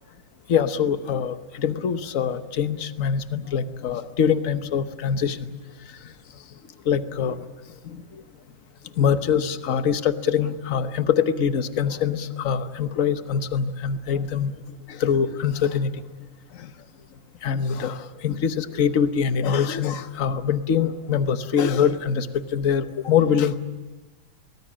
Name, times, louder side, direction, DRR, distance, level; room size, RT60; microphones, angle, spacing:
voice 1, 0.5-5.5 6.8-7.4 7.8-8.0 9.0-14.5 14.9-15.9 16.5-16.7 17.4-23.6, left 7 dB, 50° left, 10 dB, 1.3 m, -24 dB
23.5 x 19.5 x 8.7 m, 1.2 s
omnidirectional pair, 2.2 m